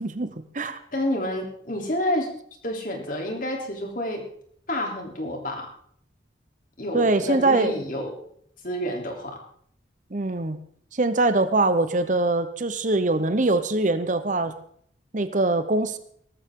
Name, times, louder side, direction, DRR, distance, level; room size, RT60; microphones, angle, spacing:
voice 1, 0.0-0.8 6.9-7.7 10.1-10.6 10.9-14.5 15.1-16.0, right 2 dB, 40° right, 11 dB, 0.9 m, -23 dB
voice 2, 0.9-2.3 2.6-4.2 4.7-5.7 6.8-8.1 8.6-9.4, left 1 dB, 45° left, 2 dB, 3.3 m, -29 dB
18.5 x 14.0 x 3.8 m, 0.64 s
head